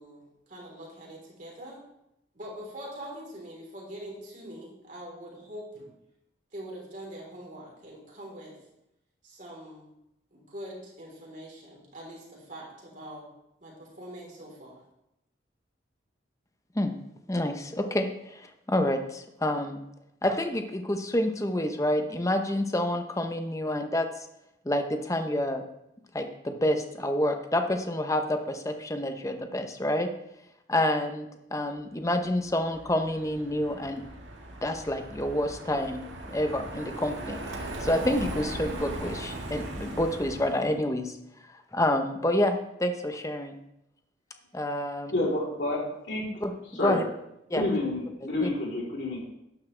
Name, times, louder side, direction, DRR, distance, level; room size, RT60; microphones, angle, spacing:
voice 1, 0.0-1.8 2.3-5.9 6.5-8.5 9.2-9.9 10.3-13.3 13.6-14.8, right 1 dB, 45° right, -3 dB, 3.9 m, -43 dB
voice 2, 17.3-19.8 20.2-24.1 24.6-25.6 26.1-30.1 30.7-34.0 34.6-36.0 36.3-41.2 41.7-43.5 44.5-45.1 46.4-46.5 46.8-47.0 47.5-47.6 48.4-48.5, left 1 dB, 15° left, 6 dB, 0.8 m, -28 dB
Car passing by, 32.2-40.8, right 1 dB, 80° right, 1.8 m, -39 dB
voice 3, 45.1-46.3 46.7-47.0 47.5-49.2, left 2 dB, 70° left, -4 dB, 3.6 m, -29 dB
12.0 x 9.9 x 3.4 m, 0.84 s
head